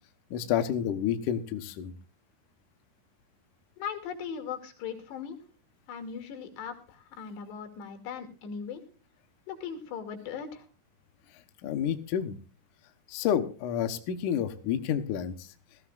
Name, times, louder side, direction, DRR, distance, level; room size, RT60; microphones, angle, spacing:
voice 1, 0.3-1.9 11.6-12.3 13.1-15.5, left 9 dB, 80° left, 7 dB, 1.8 m, -29 dB
voice 2, 3.8-5.4 5.9-8.8 9.5-10.6, left 7 dB, 65° left, 5 dB, 4.5 m, -39 dB
19.5 x 14.5 x 2.5 m, 0.38 s
omnidirectional pair, 5.5 m